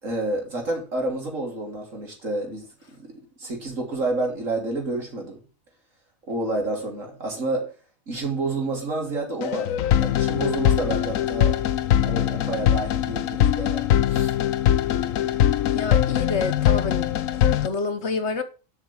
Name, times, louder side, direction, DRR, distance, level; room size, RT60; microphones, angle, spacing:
voice 1, 0.0-2.7 3.0-3.1 3.4-5.4 6.3-7.7 8.1-9.7 10.0-11.6 12.0-14.3, right 2 dB, 65° right, 3.4 m, -29 dB
sound 1, 9.4-17.7, left 11 dB, 75° left, 1.1 m, -22 dB
voice 2, 15.7-17.1 17.3-18.4, left 4 dB, 55° left, 1.3 m, -28 dB
7.7 x 5.9 x 7.1 m
omnidirectional pair, 1.4 m